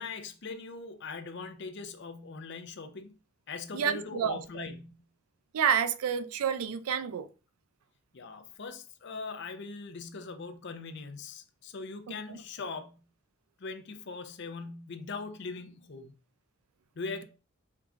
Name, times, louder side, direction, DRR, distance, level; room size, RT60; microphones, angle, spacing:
voice 1, 0.0-3.1 3.5-5.1 8.1-13.1 13.6-16.1 17.0-17.2, left 4 dB, 55° left, 0.6 m, -41 dB
voice 2, 3.7-4.6 5.5-7.3 12.3-12.4, right 7 dB, 80° right, 0.4 m, -29 dB
4.6 x 2.5 x 3.6 m
head